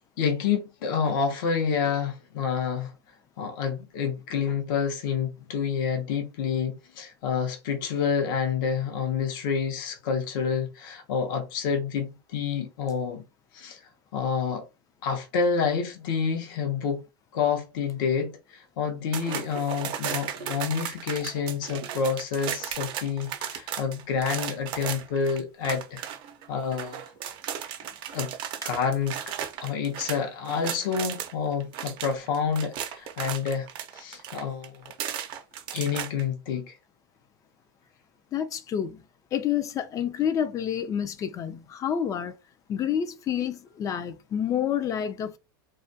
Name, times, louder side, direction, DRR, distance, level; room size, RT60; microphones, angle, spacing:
voice 1, 0.2-2.9 3.4-13.2 13.5-13.8 14.1-14.6 15.0-17.0 17.3-26.0 26.5-27.0 28.1-28.3 28.6-29.2 29.6-33.7 33.9-34.8 35.7-36.8, left 6 dB, 70° left, 0.7 m, -28 dB
sound 1, 19.1-31.3 31.6-36.2, right 9 dB, 45° right, 0.5 m, -35 dB
voice 2, 38.3-39.0 39.3-42.3 42.7-45.4, left 9 dB, 30° left, 0.3 m, -28 dB
2.3 x 2.1 x 2.6 m
supercardioid pair, 120°, 12 cm